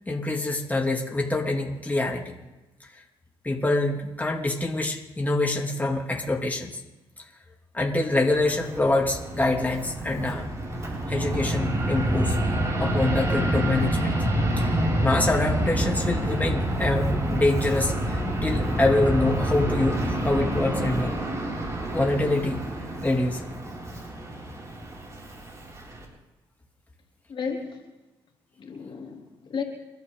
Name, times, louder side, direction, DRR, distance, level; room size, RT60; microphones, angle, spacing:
voice 1, 0.1-2.3 3.4-6.8 7.7-10.5 11.1-12.4 12.8-14.1 14.6-21.1 21.9-22.6 23.0-23.5, left 2 dB, 15° left, -1 dB, 3.1 m, -25 dB
Fixed-wing aircraft airplane, 8.2-26.0, right 1 dB, 30° right, 6.6 m, -27 dB
voice 2, 27.3-27.8 28.6-29.6, left 5 dB, 55° left, 1 dB, 3.6 m, -33 dB
29.5 x 12.0 x 4.1 m, 1.1 s
supercardioid pair, 65°, 10 cm